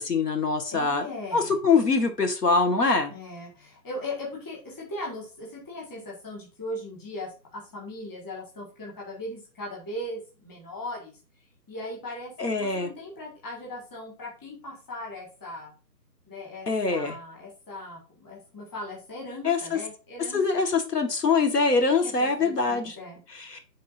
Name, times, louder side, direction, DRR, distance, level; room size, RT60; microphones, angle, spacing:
voice 1, 0.0-1.1 1.3-3.1 12.4-12.9 16.7-17.2 19.4-19.8 20.3-23.0 23.3-23.6, left 4 dB, 70° left, 6 dB, 1.8 m, -24 dB
voice 2, 0.7-1.6 3.1-11.1 11.7-15.7 16.3-20.6 21.9-23.2, left 1 dB, 10° left, -4 dB, 1.8 m, -38 dB
10.0 x 3.8 x 2.7 m, 0.34 s
figure-of-eight pair, 160°, 49 cm